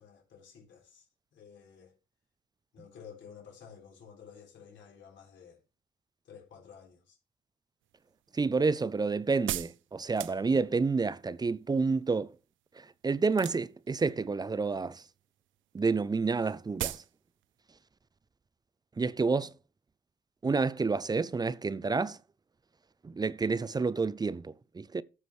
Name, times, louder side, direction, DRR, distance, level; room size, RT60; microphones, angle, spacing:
voice 1, 0.0-2.0 2.7-5.6 6.2-7.2, left 7 dB, 70° left, 4.1 m, -52 dB
sound 1, 7.9-10.9 13.3-13.9 14.2-14.8 15.1-15.3 15.5-15.6 15.8-15.9 16.3-16.4 16.8-17.1 17.4-17.5, right 14 dB, 75° right, 0.5 m, -38 dB
voice 2, 8.3-12.3 13.0-15.0 15.7-17.0 19.0-19.5 20.4-22.2 23.0-25.0, right 4 dB, 20° right, 0.5 m, -29 dB
14.0 x 6.2 x 3.2 m
cardioid pair, 90°, 20 cm